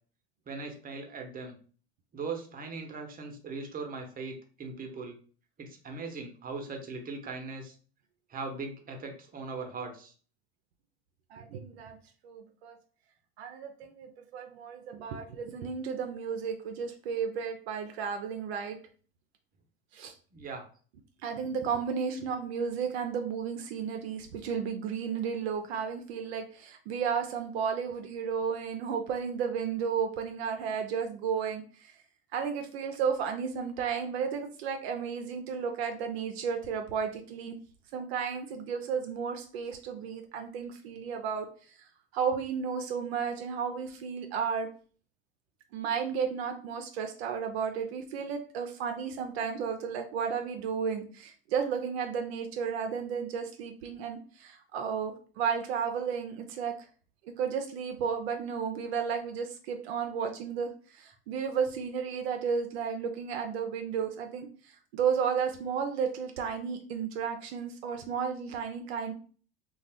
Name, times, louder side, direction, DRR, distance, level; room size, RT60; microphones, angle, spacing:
voice 1, 0.5-1.6 2.1-5.2 5.6-7.7 8.3-10.1 20.3-20.6, right 4 dB, 30° right, 3 dB, 0.8 m, -39 dB
voice 2, 11.3-12.0 12.2-12.8 13.4-18.8 19.9-20.1 21.2-31.9 32.3-37.6 37.9-41.5 42.1-44.7 45.7-56.7 57.3-69.1, right 6 dB, 75° right, 5 dB, 0.5 m, -33 dB
2.4 x 2.2 x 3.3 m, 0.42 s
hypercardioid pair, 75°, 31 cm